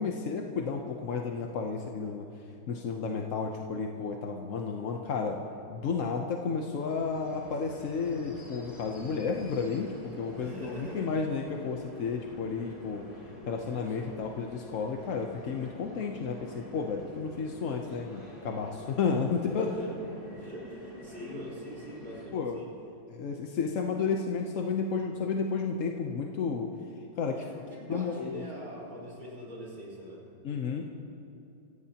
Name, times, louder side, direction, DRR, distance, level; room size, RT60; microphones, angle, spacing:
voice 1, 0.0-2.3 2.7-5.4 5.7-13.1 13.5-19.7 21.3-21.4 22.3-22.6 23.1-26.7 27.2-27.4 27.9-28.4 30.4-30.9, left 5 dB, 55° left, 2 dB, 1.0 m, -32 dB
sound 1, 6.6-22.3, left 1 dB, 20° left, 3.3 m, -48 dB
voice 2, 10.3-11.1 13.9-14.0 19.5-22.7 27.4-30.2, equal, 25° right, -6 dB, 4.7 m, -43 dB
26.0 x 16.0 x 2.9 m, 2.9 s
omnidirectional pair, 2.0 m